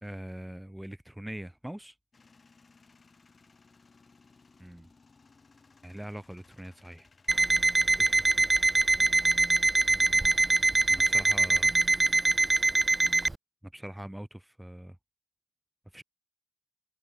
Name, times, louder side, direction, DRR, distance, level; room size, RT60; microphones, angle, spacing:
voice 1, 0.0-1.9 4.6-4.9 5.8-7.1 8.0-8.4 9.3-9.6 9.9-10.4 10.9-11.7 13.6-15.0 15.9-16.0, right 1 dB, 5° right, 5.0 m, -43 dB
Male speech man speaking / Vehicle / Engine starting, 2.1-8.3, left 4 dB, 35° left, 7.0 m, -60 dB
Alarm, 7.3-13.3, right 2 dB, 20° right, 0.6 m, -24 dB
cardioid pair, 70°, 0 cm